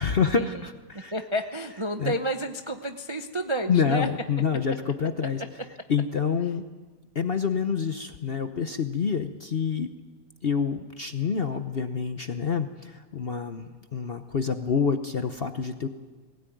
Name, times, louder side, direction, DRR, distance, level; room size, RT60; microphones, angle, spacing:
voice 1, 0.0-1.1 2.0-2.1 3.7-5.4 5.9-6.6 7.1-9.9 10.4-15.9, left 6 dB, 45° left, 8 dB, 0.8 m, -27 dB
voice 2, 1.1-4.1, right 1 dB, 30° right, 6 dB, 0.5 m, -30 dB
20.0 x 17.5 x 9.2 m, 1.4 s
omnidirectional pair, 1.9 m